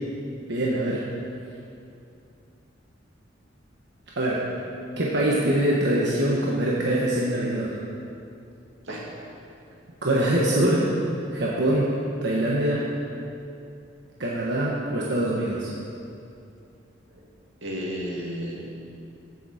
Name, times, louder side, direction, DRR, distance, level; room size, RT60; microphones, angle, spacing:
voice 1, 0.5-1.1 4.2-4.4 5.0-7.7 10.0-10.9 11.3-11.9 12.2-12.9 14.2-15.7, right 1 dB, 65° right, -4 dB, 1.3 m, -23 dB
voice 2, 17.6-18.7, equal, 90° right, -3 dB, 2.3 m, -33 dB
15.5 x 7.0 x 5.0 m, 2.6 s
head